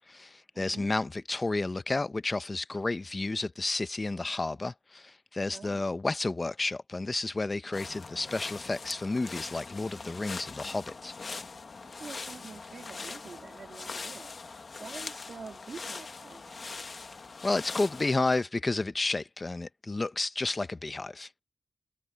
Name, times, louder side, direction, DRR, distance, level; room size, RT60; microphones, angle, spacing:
voice 1, 0.0-11.1 17.4-21.3, left 2 dB, 35° left, 0.8 m, -31 dB
voice 2, 0.5-0.9 5.5-6.0 11.8-16.8, right 5 dB, 80° right, 3.0 m, -47 dB
sound 1, 7.7-18.4, left 4 dB, 55° left, 1.1 m, -42 dB
wide cardioid pair, 105°, 0 cm